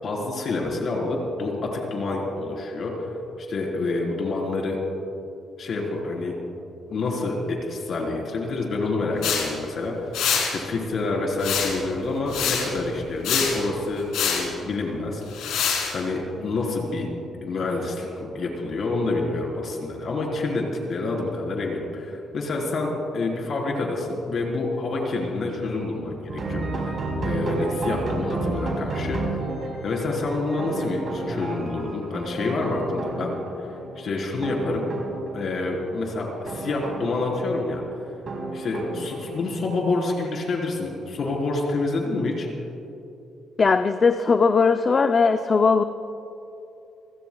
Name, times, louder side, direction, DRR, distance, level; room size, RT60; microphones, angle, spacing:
voice 1, 0.0-3.1 3.4-4.8 5.6-6.3 6.9-15.2 15.9-17.1 17.4-20.6 20.9-26.9 27.2-29.2 29.8-33.3 34.0-34.9 35.3-37.8 38.5-42.5, left 3 dB, 55° left, -1 dB, 4.0 m, -27 dB
sound 1, 9.2-9.5 10.1-10.5 11.4-11.9 12.3-12.7 13.2-13.6 14.1-14.4 15.3-15.9, left 7 dB, 90° left, 3.6 m, -24 dB
sound 2, 26.3-39.8, right 2 dB, 50° right, 4.4 m, -32 dB
voice 2, 43.6-45.8, left 4 dB, 40° left, 8 dB, 0.5 m, -19 dB
28.5 x 16.5 x 2.3 m, 2.8 s
cardioid pair, 90°, 0 cm